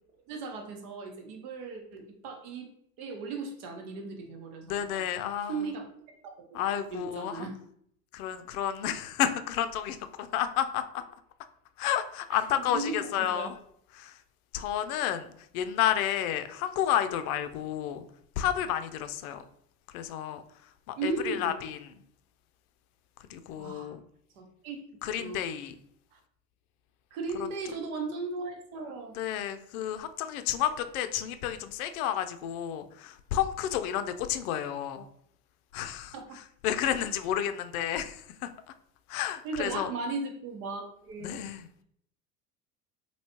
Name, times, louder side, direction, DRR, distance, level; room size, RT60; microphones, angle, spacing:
voice 1, 0.3-2.7 3.0-5.1 5.5-5.9 6.4-7.6 9.2-9.3 12.3-13.5 21.0-21.6 23.6-23.9 24.4-25.4 26.1-26.2 27.1-29.2 36.1-36.4 39.4-41.3, right 3 dB, 65° right, 4 dB, 1.0 m, -37 dB
voice 2, 4.6-5.7 6.5-7.5 8.1-11.0 11.8-13.5 13.9-14.2 14.5-15.3 15.5-18.0 18.4-19.4 19.9-20.4 20.9-21.9 23.3-24.0 25.0-25.7 29.1-35.1 35.7-38.5 39.1-39.9 41.2-41.7, left 10 dB, 65° left, 10 dB, 0.5 m, -31 dB
3.0 x 2.9 x 2.8 m, 0.68 s
hypercardioid pair, 85°, 48 cm